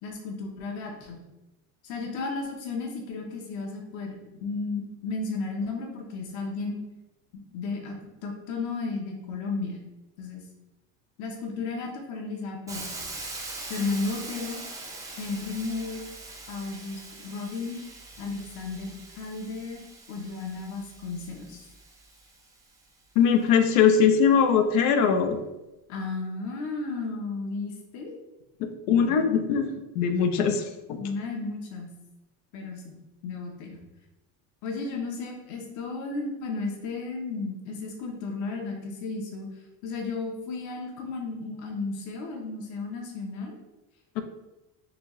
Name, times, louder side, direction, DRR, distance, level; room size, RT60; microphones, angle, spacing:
voice 1, 0.0-1.2 1.8-6.8 7.5-7.9 8.2-9.8 10.2-10.5 11.2-12.9 13.7-14.6 15.2-16.0 16.5-17.8 18.2-21.7 25.9-28.1 28.9-29.2 31.0-31.9 32.5-33.0 33.2-33.7 34.6-39.5 39.8-43.6, left 3 dB, 50° left, 1 dB, 0.8 m, -34 dB
Hiss, 12.7-22.6, right 2 dB, 10° right, 0.5 m, -42 dB
voice 2, 23.2-25.4 28.6-30.6 44.2-44.3, left 7 dB, 85° left, 7 dB, 0.6 m, -21 dB
4.0 x 2.7 x 3.0 m, 1.0 s
cardioid pair, 135°, 37 cm